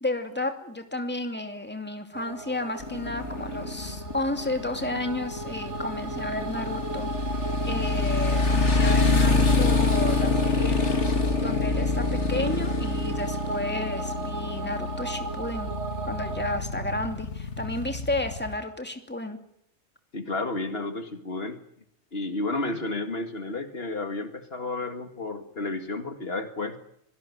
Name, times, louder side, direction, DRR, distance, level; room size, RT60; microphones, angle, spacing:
voice 1, 0.0-7.1 7.7-10.8 11.4-15.7 16.1-19.4, left 1 dB, 10° left, 6 dB, 2.6 m, -32 dB
sound 1, 2.1-16.6, right 4 dB, 80° right, 1.5 m, -37 dB
Motorcycle, 2.8-18.5, left 3 dB, 80° left, 2.9 m, -26 dB
voice 2, 20.1-21.6 22.1-26.8, left 2 dB, 60° left, 8 dB, 2.2 m, -31 dB
25.0 x 18.0 x 9.6 m, 0.71 s
omnidirectional pair, 1.2 m